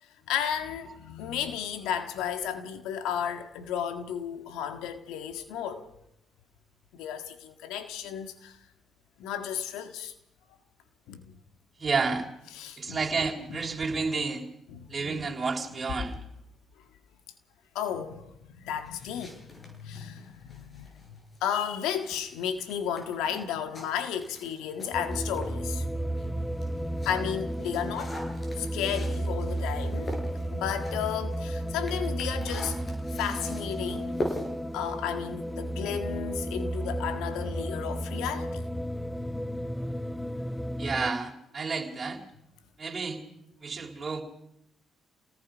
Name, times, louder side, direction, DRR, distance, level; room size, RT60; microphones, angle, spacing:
voice 1, 0.3-5.9 6.9-8.6 9.2-10.1 11.1-11.4 12.5-13.0 13.5-13.6 14.7-15.3 17.8-20.9 21.4-25.8 27.1-28.1 28.6-30.2 30.5-32.8 33.2-34.2 34.7-38.7, left 9 dB, 85° left, 1.7 m, -33 dB
voice 2, 11.8-12.3 12.8-14.4 14.9-16.2 40.8-42.2 42.8-43.2 43.6-44.2, right 4 dB, 40° right, 3.8 m, -30 dB
sound 1, 18.8-25.6 26.1-35.8, left 1 dB, 40° left, 7.8 m, -43 dB
sound 2, 24.9-41.1, right 1 dB, 5° left, 0.9 m, -33 dB
28.0 x 18.5 x 5.2 m
supercardioid pair, 55°, 0 cm